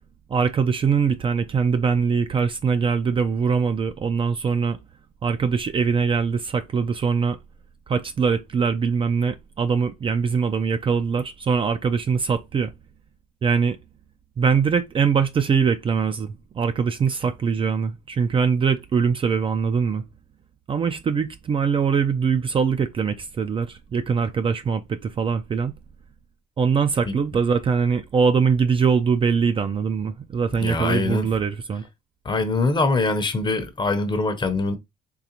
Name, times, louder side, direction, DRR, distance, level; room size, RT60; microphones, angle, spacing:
voice 1, 0.3-4.8 5.2-7.4 7.9-12.7 13.4-13.8 14.4-20.0 20.7-25.7 26.6-31.8, right 6 dB, 30° right, 0.4 m, -22 dB
voice 2, 30.6-31.3 32.2-34.8, left 3 dB, 25° left, 0.7 m, -23 dB
3.8 x 3.1 x 2.9 m
cardioid pair, 110°, 17 cm